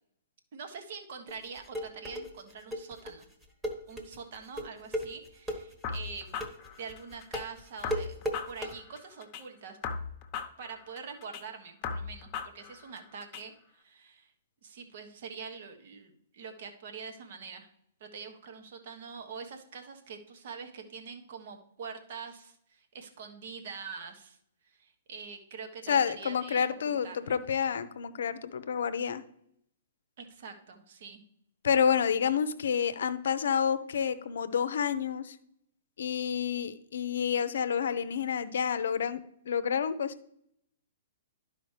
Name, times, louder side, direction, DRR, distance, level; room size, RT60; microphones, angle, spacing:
voice 1, 0.5-3.3 3.9-6.4 6.8-9.8 10.6-14.3 14.6-17.7 18.0-24.4 24.7-27.4 30.2-31.2, right 5 dB, 55° right, 5 dB, 1.2 m, -45 dB
sound 1, 1.3-8.7, equal, 10° right, 1.3 m, -36 dB
sound 2, 5.8-7.4 7.8-9.4 9.8-11.4 11.8-13.4, left 6 dB, 30° left, 0.9 m, -38 dB
voice 2, 25.9-29.2 31.6-35.4 36.0-40.3, left 7 dB, 65° left, 12 dB, 0.6 m, -29 dB
12.0 x 4.9 x 3.3 m, 0.72 s
figure-of-eight pair, 120°, 0 cm